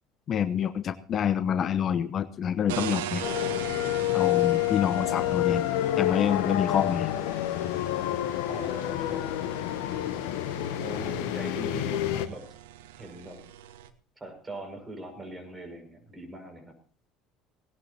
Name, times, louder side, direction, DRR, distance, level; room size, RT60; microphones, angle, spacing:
voice 1, 0.3-3.2 4.1-5.6 6.0-7.1, left 8 dB, 40° left, 12 dB, 0.8 m, -27 dB
sound 1, 2.7-13.9, right 11 dB, 70° right, 1.2 m, -42 dB
sound 2, 3.2-12.3, left 13 dB, 65° left, 1.0 m, -28 dB
voice 2, 4.9-5.6 8.5-9.3 10.8-12.5 12.9-13.4 14.2-16.7, right 1 dB, 20° right, 5 dB, 6.1 m, -41 dB
18.5 x 18.0 x 2.9 m, 0.44 s
figure-of-eight pair, 65°, 0 cm